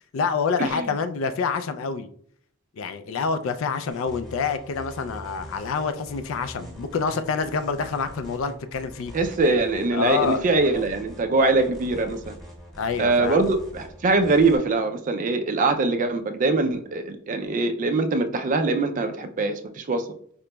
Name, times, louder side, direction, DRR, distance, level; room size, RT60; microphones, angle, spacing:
voice 1, 0.1-2.1 2.8-9.1 9.9-10.4 12.8-13.5, left 5 dB, 65° left, 0.3 m, -27 dB
sound 1, 3.9-14.6, equal, ahead, 1.0 m, -43 dB
voice 2, 9.1-12.3 13.0-20.1, right 3 dB, 40° right, 0.3 m, -23 dB
4.9 x 2.9 x 2.2 m
head